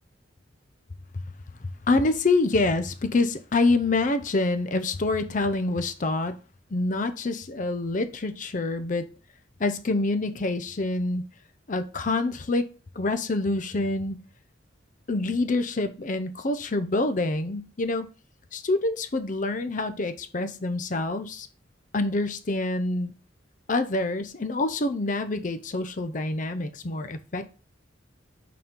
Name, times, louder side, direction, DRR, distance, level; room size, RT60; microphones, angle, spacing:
voice 1, 1.9-6.3 6.7-9.0 9.6-11.2 11.7-12.7 13.0-14.2 15.1-18.1 18.5-21.5 21.9-23.1 23.7-27.5, left 2 dB, 40° left, 0.6 m, -26 dB
6.8 x 4.2 x 3.7 m
head